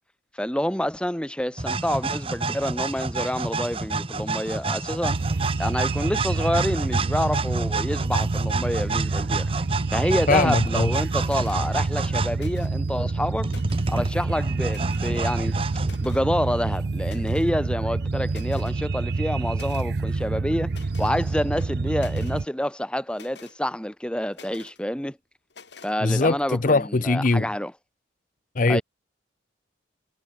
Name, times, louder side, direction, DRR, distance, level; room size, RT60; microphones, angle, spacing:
voice 1, 0.3-5.2 5.6-9.5 9.9-13.5 13.9-15.6 16.0-20.7 21.0-25.2 25.8-27.7 28.7-28.8, equal, 5° left, 1.8 m, -27 dB
sound 1, 1.6-12.4 13.4-16.0, right 3 dB, 30° right, 1.1 m, -29 dB
sound 2, 5.0-22.5, right 3 dB, 55° right, 0.6 m, -27 dB
voice 2, 10.3-10.9 26.0-27.5 28.6-28.8, left 3 dB, 45° left, 0.7 m, -21 dB
sound 3, 11.2-11.6 12.3-12.9 13.3-14.0 14.7-15.2 15.8-16.3 17.0-17.5 17.9-18.0 18.3-18.8 19.5-19.9 20.7-21.2 21.6-22.4 23.1-23.6 24.3-24.8 25.5-26.0, left 5 dB, 65° left, 3.4 m, -48 dB
head